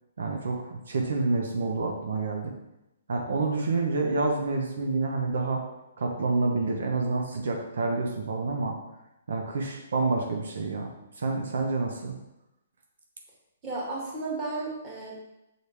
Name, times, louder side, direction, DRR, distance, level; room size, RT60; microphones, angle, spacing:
voice 1, 0.2-2.5 3.1-5.6 6.0-8.8 9.3-10.9 11.2-12.1, right 3 dB, 75° right, 2 dB, 1.0 m, -28 dB
voice 2, 13.6-15.2, right 3 dB, 20° right, -5 dB, 1.8 m, -33 dB
6.6 x 4.1 x 3.5 m, 0.92 s
hypercardioid pair, 160°, 0 cm